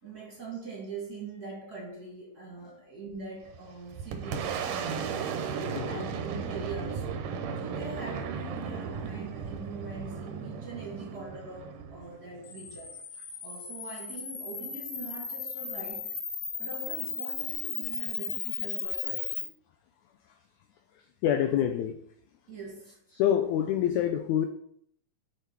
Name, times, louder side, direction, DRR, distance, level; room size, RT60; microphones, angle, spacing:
voice 1, 0.0-5.0 5.6-7.3 7.6-13.0 13.4-16.1 16.6-19.5 21.3-21.6 22.5-23.0, right 3 dB, 35° right, -3 dB, 2.1 m, -42 dB
Boom, 3.4-12.9, right 6 dB, 75° right, 2.3 m, -36 dB
Camera, 12.4-19.4, left 6 dB, 65° left, 2.8 m, -36 dB
voice 2, 21.2-22.0 23.1-24.5, left 10 dB, 85° left, 7 dB, 1.7 m, -26 dB
6.9 x 6.0 x 4.7 m, 0.67 s
omnidirectional pair, 3.9 m